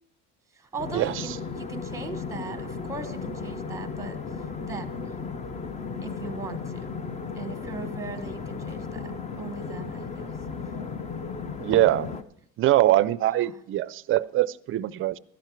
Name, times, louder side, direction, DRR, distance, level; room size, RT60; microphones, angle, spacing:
voice 1, 0.6-4.2 4.6-5.0 6.0-6.9 7.3-10.3 13.3-13.6, right 4 dB, 10° right, 1.1 m, -39 dB
sound 1, 0.8-12.2, left 5 dB, 20° left, 0.5 m, -35 dB
voice 2, 11.6-12.1 12.6-15.2, right 14 dB, 40° right, 0.4 m, -23 dB
13.0 x 10.5 x 4.6 m
cardioid pair, 140°, 32 cm